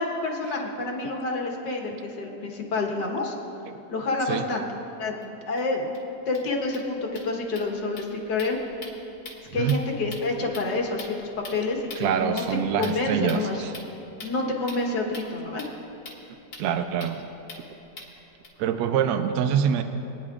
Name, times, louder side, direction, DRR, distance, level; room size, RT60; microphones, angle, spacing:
voice 1, 0.0-3.3 3.9-4.6 5.0-5.9 6.3-8.6 9.5-13.7 14.2-15.6, left 3 dB, 70° left, 0 dB, 1.9 m, -28 dB
sound 1, 5.2-5.3 5.6-5.7 5.9-6.0 6.2-18.5, left 2 dB, 90° left, 2.7 m, -45 dB
voice 2, 12.0-13.7 16.6-17.2 18.6-19.8, right 8 dB, 70° right, 8 dB, 1.0 m, -25 dB
23.5 x 10.0 x 2.4 m, 3.0 s
omnidirectional pair, 2.0 m